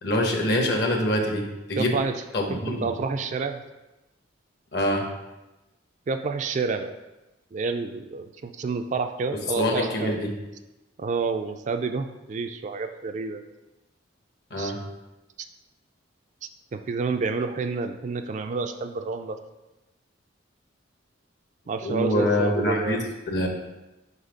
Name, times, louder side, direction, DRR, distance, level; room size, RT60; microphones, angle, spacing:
voice 1, 0.0-2.0 2.3-2.9 4.7-5.1 9.4-10.3 14.5-14.8 21.8-23.0 23.3-23.5, left 1 dB, 60° left, 2 dB, 1.1 m, -25 dB
voice 2, 1.8-2.2 2.7-3.6 6.1-7.0 7.5-10.2 11.0-13.4 14.6-14.7 16.7-19.4 21.7-23.0, right 4 dB, 40° right, 7 dB, 0.3 m, -29 dB
5.1 x 4.1 x 5.0 m, 1.0 s
head